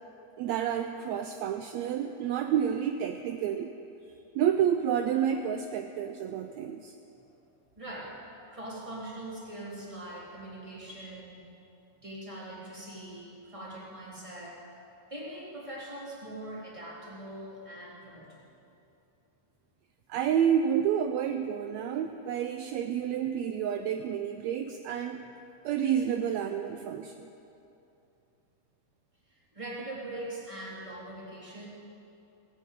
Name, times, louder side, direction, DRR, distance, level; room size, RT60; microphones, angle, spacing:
voice 1, 0.4-3.7 4.3-6.9 20.1-25.2 25.6-27.3, right 9 dB, 80° right, 6 dB, 1.6 m, -29 dB
voice 2, 7.8-8.1 8.5-11.5 12.0-14.6 15.1-18.5 29.3-31.7, right 1 dB, 10° right, -6 dB, 3.2 m, -42 dB
17.5 x 8.5 x 9.0 m, 2.8 s
omnidirectional pair, 3.6 m